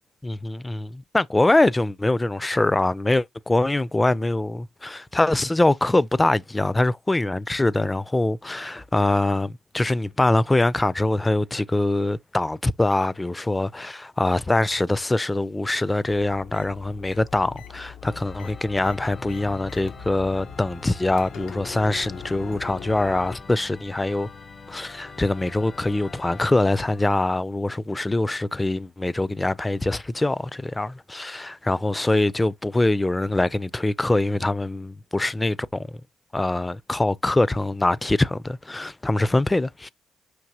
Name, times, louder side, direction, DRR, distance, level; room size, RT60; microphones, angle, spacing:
voice 1, 0.2-24.3 24.7-36.0 36.3-39.9, left 2 dB, 15° left, 0.4 m, -23 dB
sound 1, 16.1-23.4, left 8 dB, 85° left, 0.9 m, -42 dB
Organ, 18.0-27.1, left 4 dB, 45° left, 0.7 m, -43 dB
5.9 x 2.8 x 2.8 m
cardioid pair, 90°, 0 cm